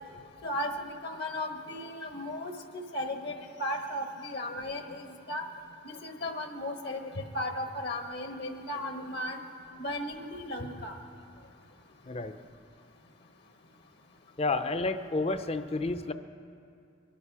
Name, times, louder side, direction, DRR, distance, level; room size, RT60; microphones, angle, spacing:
voice 1, 0.4-3.3 3.6-5.4 5.8-9.4 9.8-10.9, left 1 dB, 60° left, 5 dB, 1.2 m, -35 dB
voice 2, 12.0-12.3 14.4-16.1, left 3 dB, 30° left, 10 dB, 0.6 m, -30 dB
23.0 x 11.5 x 4.8 m, 2.4 s
head